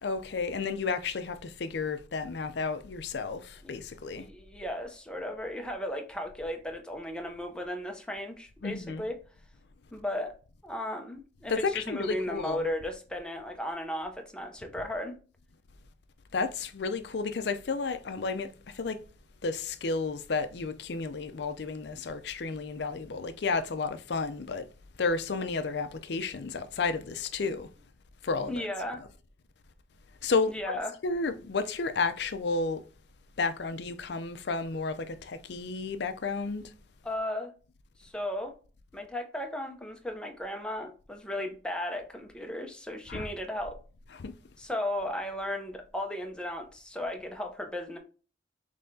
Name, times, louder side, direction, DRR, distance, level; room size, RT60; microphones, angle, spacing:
voice 1, 0.0-4.3 8.6-9.1 11.5-12.6 16.3-19.0 19.4-24.7 25.0-27.7 28.2-28.7 30.2-30.5 31.0-32.8 33.4-36.7 43.1-43.3 44.2-44.3, left 4 dB, 60° left, 0.5 m, -32 dB
voice 2, 4.2-9.2 9.9-10.3 10.6-15.1 28.5-29.0 30.5-30.9 37.0-37.5 38.0-38.5 38.9-43.8 44.6-48.0, left 1 dB, 5° left, 0.6 m, -35 dB
5.5 x 3.3 x 2.7 m
head